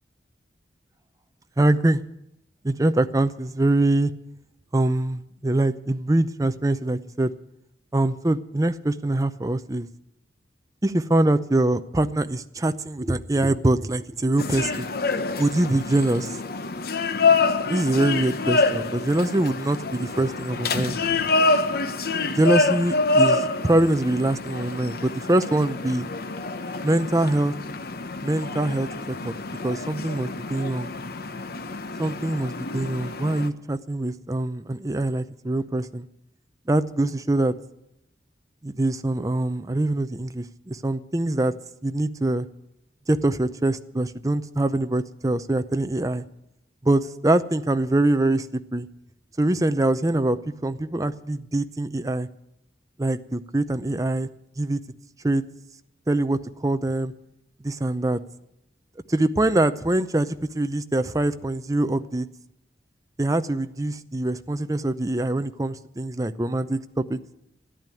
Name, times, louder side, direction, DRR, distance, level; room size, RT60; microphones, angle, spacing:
voice 1, 1.6-2.0 2.6-4.1 4.7-7.3 7.9-9.9 10.8-14.9 15.4-16.4 17.7-21.0 22.4-26.1 26.8-27.5 28.2-29.3 29.6-30.9 32.0-36.1 36.7-37.5 38.6-41.5 41.8-42.5 43.1-46.2 46.8-48.9 49.4-50.4 50.6-52.3 53.0-54.3 54.6-54.8 55.2-55.4 56.1-57.1 57.6-58.2 59.1-62.3 63.2-67.2, right 1 dB, 20° right, 11 dB, 0.6 m, -24 dB
sound 1, 14.4-33.5, left 3 dB, 55° left, 0.9 m, -26 dB
14.0 x 11.0 x 9.0 m, 0.82 s
head